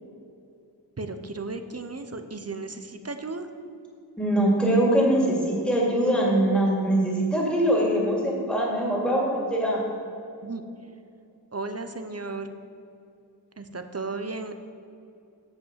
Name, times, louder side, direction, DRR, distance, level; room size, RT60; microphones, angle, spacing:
voice 1, 1.0-3.5 10.4-10.6 11.5-12.5 13.6-14.5, right 3 dB, 35° right, 8 dB, 0.7 m, -34 dB
voice 2, 4.2-9.8, right 1 dB, ahead, -4 dB, 2.4 m, -23 dB
8.3 x 5.3 x 7.4 m, 2.6 s
wide cardioid pair, 50°, 43 cm